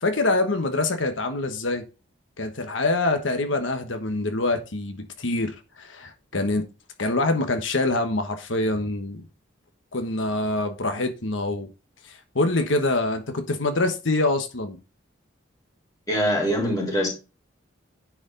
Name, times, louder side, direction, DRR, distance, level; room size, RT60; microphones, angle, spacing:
voice 1, 0.0-1.8 2.4-6.6 7.0-9.2 9.9-11.7 12.1-14.8, left 2 dB, 75° left, 1.2 m, -25 dB
voice 2, 16.1-17.1, equal, 15° left, 4.0 m, -23 dB
10.0 x 4.9 x 3.9 m
head